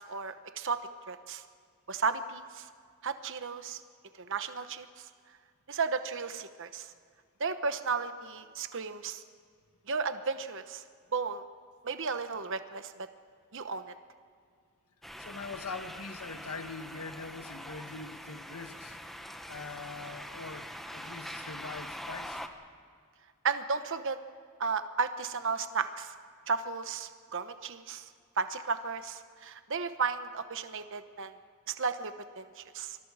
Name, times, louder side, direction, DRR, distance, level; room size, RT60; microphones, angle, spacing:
voice 1, 0.0-1.4 1.9-2.6 3.0-3.8 4.2-5.1 5.7-6.9 7.4-9.2 9.9-10.8 11.1-11.4 11.8-12.9 13.5-13.9 23.4-24.2 24.6-26.1 26.5-28.1 28.4-31.3 31.7-33.0, right 5 dB, 60° right, 9 dB, 1.0 m, -34 dB
sound 1, 15.0-22.5, equal, ahead, 1.2 m, -43 dB
voice 2, 15.2-22.4, left 4 dB, 80° left, 8 dB, 1.4 m, -43 dB
27.0 x 21.5 x 4.9 m, 2.1 s
head